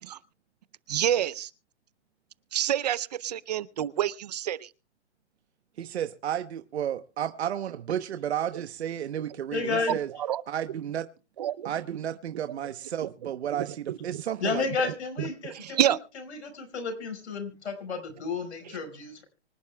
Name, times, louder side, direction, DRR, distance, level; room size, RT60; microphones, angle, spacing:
voice 1, 0.9-1.5 2.5-4.7 9.8-9.9 10.2-10.4 11.4-11.7 13.0-13.1 13.6-14.2 15.2-16.0, right 11 dB, 35° right, 0.6 m, -28 dB
voice 2, 5.8-10.1 10.5-11.1 11.6-14.9, right 10 dB, 70° right, 1.1 m, -32 dB
voice 3, 9.5-10.0 14.4-15.9 16.4-19.2, left 4 dB, 80° left, 5.2 m, -32 dB
25.0 x 11.0 x 2.3 m
hypercardioid pair, 160°, 34 cm